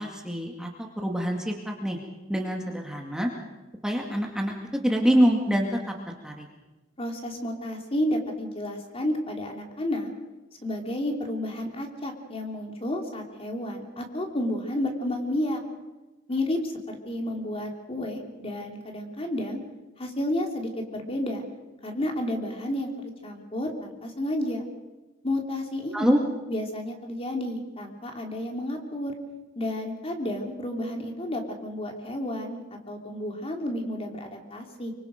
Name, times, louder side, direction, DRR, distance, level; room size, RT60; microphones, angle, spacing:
voice 1, 0.0-2.0 2.3-3.3 3.8-4.5 4.8-5.9 6.2-6.5 25.9-26.2, equal, 5° right, 1 dB, 2.1 m, -25 dB
voice 2, 7.0-10.1 10.6-15.6 16.3-19.6 20.0-21.4 21.8-24.6 25.2-26.2 26.5-29.1 29.5-34.9, left 1 dB, 30° left, 3 dB, 2.9 m, -31 dB
25.0 x 24.5 x 5.2 m, 1.1 s
head